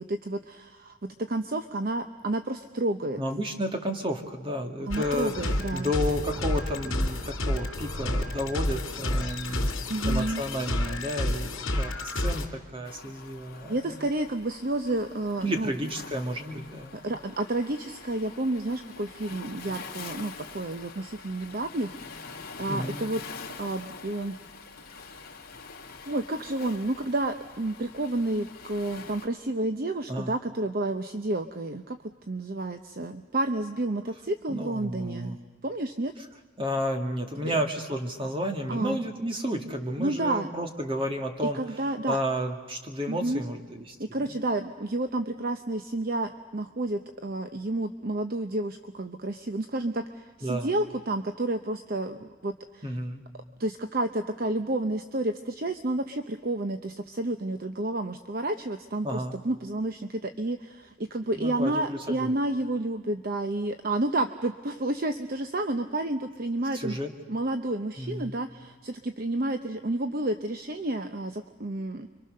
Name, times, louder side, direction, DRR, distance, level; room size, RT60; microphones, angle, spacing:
voice 1, 0.0-3.2 4.9-5.9 9.9-10.4 13.7-15.7 16.9-23.2 23.6-24.5 24.9-25.2 26.1-35.4 35.6-36.1 37.4-37.6 38.7-39.0 40.0-40.5 41.4-42.2 43.1-43.5 44.0-53.0 53.6-67.0 67.3-72.1, right 2 dB, 45° right, 8 dB, 0.8 m, -30 dB
voice 2, 3.2-5.3 5.7-9.7 10.1-13.8 15.4-17.1 22.7-23.0 30.1-30.3 34.5-35.4 36.6-41.6 42.1-44.0 50.4-50.7 52.8-53.2 59.0-59.3 61.4-62.3 66.7-67.1 68.0-68.4, equal, 25° right, 4 dB, 2.1 m, -31 dB
sound 1, 4.9-12.5, left 1 dB, 65° left, 3.6 m, -30 dB
Waves surf, 12.8-29.3, left 4 dB, 45° left, 2.6 m, -45 dB
30.0 x 24.5 x 6.6 m, 1.4 s
head